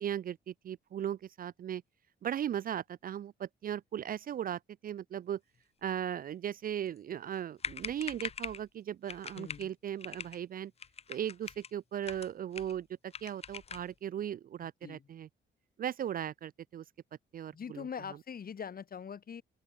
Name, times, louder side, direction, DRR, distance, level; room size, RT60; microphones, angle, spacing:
voice 1, 0.0-1.8 2.2-5.4 5.8-10.7 11.1-15.3 15.8-16.8 17.3-17.9, right 10 dB, 45° right, 0.4 m, -37 dB
sound 1, 7.3-7.4 7.6-8.7 9.1-9.7 10.0-10.4 10.8-11.7 12.0-12.8 13.1-13.9, left 6 dB, 30° left, 0.6 m, -42 dB
voice 2, 9.3-9.7 14.8-15.1 17.5-19.4, left 7 dB, 50° left, 4.5 m, -42 dB
open air
cardioid pair, 90°, 20 cm